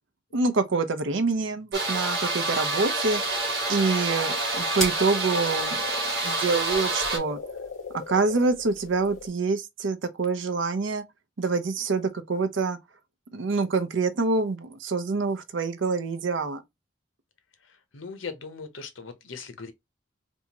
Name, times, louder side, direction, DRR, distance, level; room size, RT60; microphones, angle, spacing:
voice 1, 0.3-3.2 3.7-5.8 6.2-7.4 8.1-11.0 11.4-12.8 13.3-16.6, right 4 dB, 75° right, 0.6 m, -26 dB
sound 1, 1.7-7.2, right 2 dB, 55° right, 1.6 m, -27 dB
sound 2, 2.5-9.3, equal, 5° left, 1.5 m, -41 dB
sound 3, 4.1-9.3, left 5 dB, 65° left, 0.5 m, -41 dB
voice 2, 17.7-19.7, left 5 dB, 90° left, 0.8 m, -39 dB
3.5 x 2.7 x 2.8 m
head